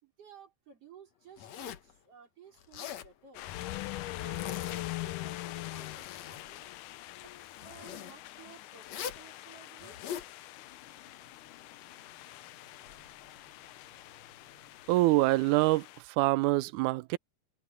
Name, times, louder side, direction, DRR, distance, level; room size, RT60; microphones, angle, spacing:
voice 1, 0.0-3.5 4.2-6.7 7.2-10.0, right 7 dB, 50° right, 5.1 m, -55 dB
Zipper (clothing), 1.4-1.9 2.6-3.1 4.1-5.0 5.5-6.5 7.6-8.1 8.8-9.3 9.8-10.3, left 9 dB, 65° left, 2.3 m, -42 dB
sound 1, 3.3-16.0, left 17 dB, 90° left, 2.3 m, -43 dB
sound 2, 10.5-15.5, left 5 dB, 40° left, 3.0 m, -61 dB
voice 2, 14.9-15.9 16.2-17.2, right 19 dB, 80° right, 2.0 m, -25 dB
open air
omnidirectional pair, 3.6 m